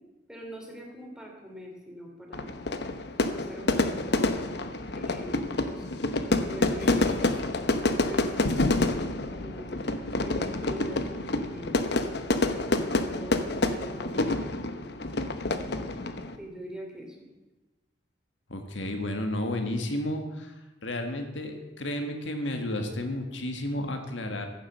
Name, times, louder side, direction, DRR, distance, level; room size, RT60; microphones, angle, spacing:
voice 1, 0.3-2.6 3.3-4.2 4.9-5.8 6.4-7.1 7.9-8.5 9.3-11.8 12.7-14.5 16.4-17.2, right 1 dB, 5° right, 0 dB, 2.9 m, -43 dB
Fire / Fireworks, 2.3-16.4, left 2 dB, 60° left, 1.0 m, -28 dB
voice 2, 18.5-24.5, left 1 dB, 90° left, 5 dB, 1.8 m, -32 dB
15.0 x 7.6 x 7.4 m, 1.1 s
head